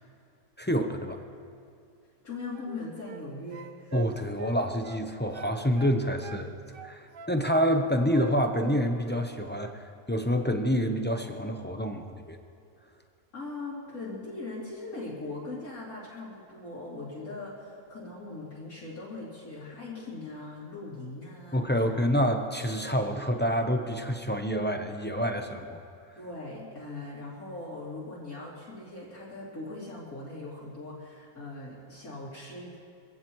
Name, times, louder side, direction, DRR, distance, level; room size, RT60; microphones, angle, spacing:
voice 1, 0.6-1.2 3.9-6.6 6.8-9.7 10.1-12.4 21.5-25.8, equal, 15° left, 4 dB, 0.4 m, -27 dB
voice 2, 2.2-4.0 13.3-21.6 26.2-32.8, left 2 dB, 70° left, -8 dB, 3.6 m, -40 dB
sound 1, 2.5-3.3 3.5-5.1 5.3-6.5 6.7-7.8 8.1-9.2 9.5-9.8, right 9 dB, 60° right, 0.6 m, -43 dB
25.5 x 16.0 x 3.1 m, 2.4 s
omnidirectional pair, 1.6 m